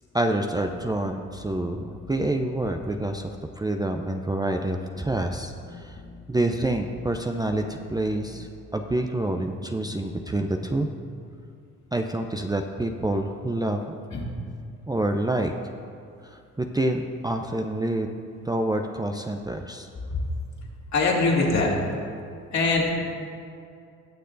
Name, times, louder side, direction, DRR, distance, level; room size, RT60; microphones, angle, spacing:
voice 1, 0.1-6.0 6.3-10.9 11.9-13.8 14.9-15.5 16.2-18.1 18.5-19.9, right 1 dB, 10° right, 4 dB, 0.6 m, -27 dB
sound 1, 0.6-3.2 5.0-8.6 9.6-11.3, left 2 dB, 25° left, 1.1 m, -45 dB
voice 2, 20.9-21.8 22.5-22.9, left 3 dB, 55° left, -3 dB, 2.5 m, -22 dB
19.5 x 6.5 x 2.7 m, 2.4 s
hypercardioid pair, 55°, 34 cm